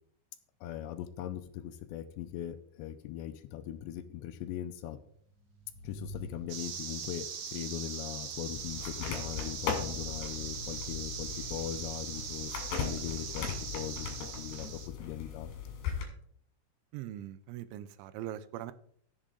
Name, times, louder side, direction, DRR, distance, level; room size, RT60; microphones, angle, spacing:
voice 1, 0.6-5.0 5.8-13.5 13.7-14.1 14.4-15.5, left 12 dB, 80° left, 11 dB, 2.7 m, -40 dB
sound 1, 5.0-7.3, equal, 50° right, 2.4 m, -48 dB
sound 2, 6.5-14.9, right 7 dB, 65° right, 3.1 m, -41 dB
sound 3, 8.6-16.1, left 6 dB, 65° left, 4.1 m, -38 dB
voice 2, 16.9-18.7, right 12 dB, 90° right, 14 dB, 3.1 m, -41 dB
15.5 x 7.5 x 3.8 m, 0.62 s
omnidirectional pair, 5.3 m